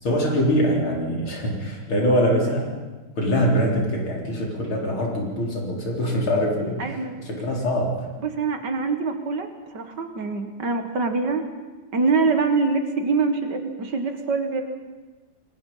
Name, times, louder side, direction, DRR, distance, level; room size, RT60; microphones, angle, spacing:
voice 1, 0.0-2.7 3.2-8.0, equal, 70° left, -1 dB, 4.9 m, -23 dB
voice 2, 6.8-7.2 8.2-11.4 11.9-14.6, right 4 dB, 55° right, 6 dB, 2.1 m, -24 dB
27.5 x 20.5 x 5.6 m, 1.2 s
omnidirectional pair, 2.4 m